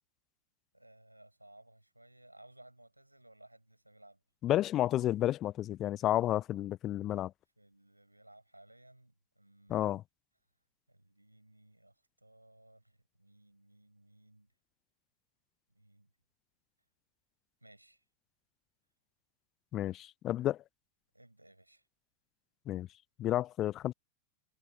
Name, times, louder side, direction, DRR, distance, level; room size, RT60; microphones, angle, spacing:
voice 1, 0.7-4.2 7.6-9.9 10.9-14.5 15.7-16.1 17.6-18.0 19.8-20.0 21.1-21.9, right 1 dB, 85° right, 7.3 m, -60 dB
voice 2, 4.4-7.3 9.7-10.0 19.7-20.6 22.7-22.9 23.2-23.9, left 13 dB, 30° left, 0.6 m, -31 dB
figure-of-eight pair, 90°, 0 cm